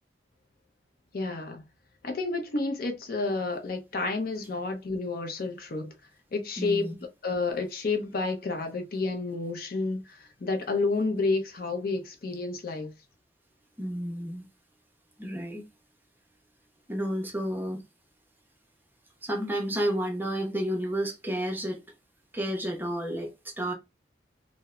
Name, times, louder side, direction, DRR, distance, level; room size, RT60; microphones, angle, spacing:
voice 1, 1.1-1.6 2.0-5.9 6.3-7.0 7.2-12.9, left 3 dB, 55° left, 0.5 m, -30 dB
voice 2, 6.6-6.9 13.8-14.5 15.2-15.6 16.9-17.8 19.2-21.8 22.3-23.7, equal, 10° right, 0.5 m, -31 dB
3.0 x 2.0 x 2.3 m
head